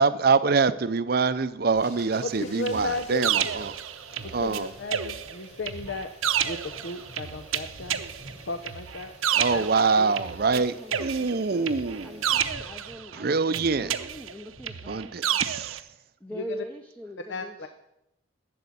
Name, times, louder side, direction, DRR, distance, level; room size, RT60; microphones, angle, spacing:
voice 1, 0.0-3.7 4.3-4.7 9.3-12.3 13.1-13.9 14.9-15.8, right 4 dB, 50° right, 12 dB, 0.5 m, -25 dB
sound 1, 1.7-12.4, equal, 35° left, 3.5 m, -51 dB
voice 2, 2.2-3.3 4.2-6.1 6.4-8.0 8.4-9.1 9.5-9.7 10.0-10.1 16.3-16.6 17.3-17.7, left 3 dB, 65° left, 7 dB, 0.7 m, -34 dB
sound 2, 2.6-15.3, equal, 50° left, 3.9 m, -53 dB
sound 3, 2.7-4.6 4.9-10.6 10.9-13.2 13.5-15.8, right 9 dB, 90° right, 0.8 m, -30 dB
voice 3, 10.5-15.4 15.9-17.7, equal, 5° left, 4 dB, 0.7 m, -43 dB
12.0 x 7.7 x 8.4 m, 0.86 s
head